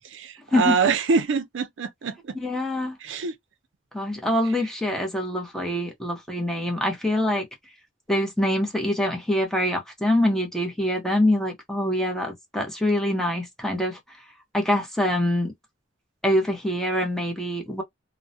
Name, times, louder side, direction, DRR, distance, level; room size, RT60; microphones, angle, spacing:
voice 1, 0.1-2.4 3.0-3.3, right 5 dB, 80° right, 0.5 m, -25 dB
voice 2, 2.4-3.0 3.9-7.5 8.1-14.2 14.5-15.5 16.2-17.8, left 1 dB, 5° left, 0.7 m, -24 dB
2.2 x 2.0 x 2.6 m
head